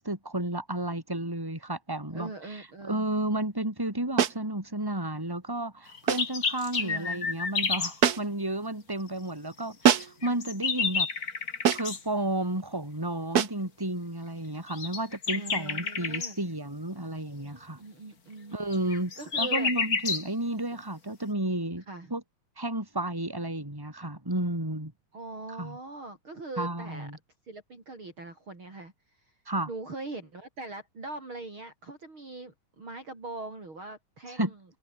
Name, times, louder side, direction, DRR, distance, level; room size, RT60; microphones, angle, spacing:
voice 1, 0.0-11.1 11.7-17.8 18.5-21.8 22.1-22.2 22.6-24.9 25.6-25.8 26.6-27.2 29.5-29.7 34.4-34.5, right 1 dB, 5° right, 5.5 m, -32 dB
voice 2, 2.1-3.1 6.8-7.3 15.3-16.4 17.8-18.6 19.2-19.7 21.9-22.1 25.1-27.1 27.5-28.9 29.7-34.6, right 2 dB, 40° right, 6.5 m, -41 dB
sound 1, 4.2-4.5 6.1-6.4 8.0-8.4 9.8-10.3 11.6-12.0 13.3-13.7, right 8 dB, 75° right, 0.8 m, -25 dB
sound 2, 5.9-8.0 10.0-12.0 14.7-16.3 18.7-20.3, left 5 dB, 30° left, 2.4 m, -30 dB
omnidirectional pair, 3.6 m